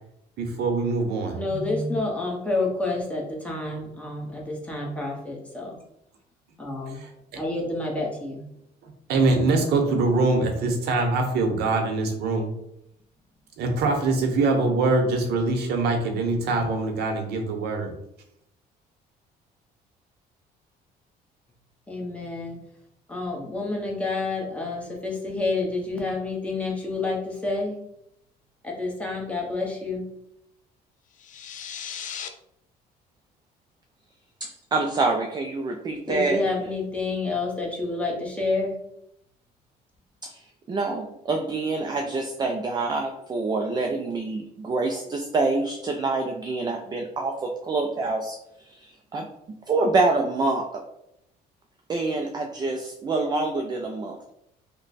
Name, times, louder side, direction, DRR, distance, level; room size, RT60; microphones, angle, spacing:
voice 1, 0.4-1.4 6.9-7.1 8.8-12.5 13.6-17.9, right 3 dB, 75° right, 4 dB, 0.8 m, -23 dB
voice 2, 1.3-5.8 6.6-7.0 7.3-8.4 21.9-22.6 23.1-27.7 28.6-30.0 36.1-38.7, left 3 dB, 5° left, -2 dB, 0.9 m, -29 dB
sound 1, 31.1-32.3, left 8 dB, 50° left, 0.4 m, -36 dB
voice 3, 34.4-36.4 40.2-49.3 49.7-50.8 51.9-54.3, right 3 dB, 25° right, 2 dB, 0.4 m, -26 dB
3.0 x 2.1 x 4.0 m, 0.79 s
cardioid pair, 110°, 17 cm